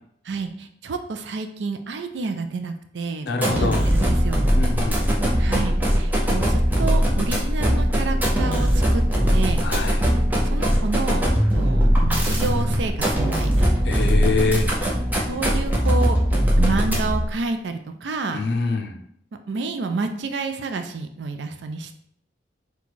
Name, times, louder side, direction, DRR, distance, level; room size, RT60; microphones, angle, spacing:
voice 1, 0.3-4.5 5.4-9.0 9.3-9.6 10.5-11.2 11.5-13.7 15.2-16.2 16.6-18.4 19.5-21.9, right 4 dB, 70° right, 7 dB, 0.4 m, -29 dB
voice 2, 3.2-3.9 4.5-5.0 9.6-10.1 13.8-14.7 18.3-19.0, left 3 dB, 60° left, 4 dB, 0.5 m, -25 dB
sound 1, 3.3-17.3, equal, 10° right, 0.8 m, -20 dB
4.0 x 2.3 x 4.5 m, 0.69 s
head